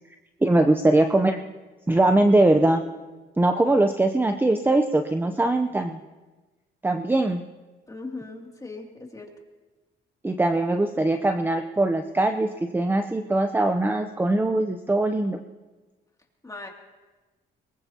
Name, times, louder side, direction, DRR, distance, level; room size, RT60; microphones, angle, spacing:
voice 1, 0.4-1.4 1.9-2.8 3.4-6.0 6.8-7.4 10.2-15.4, right 2 dB, 10° right, 7 dB, 0.7 m, -21 dB
voice 2, 7.9-9.3 16.4-16.7, left 3 dB, 15° left, 0 dB, 2.7 m, -38 dB
22.5 x 20.0 x 2.9 m, 1.2 s
cardioid pair, 90°, 20 cm